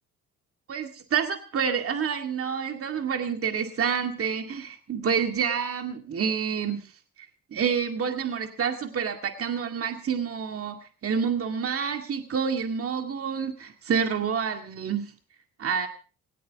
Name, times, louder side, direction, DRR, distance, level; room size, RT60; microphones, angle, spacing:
voice 1, 0.7-6.9 7.5-15.1 15.6-15.9, right 7 dB, 50° right, 5 dB, 2.1 m, -28 dB
18.5 x 18.0 x 3.6 m, 0.36 s
cardioid pair, 90°, 30 cm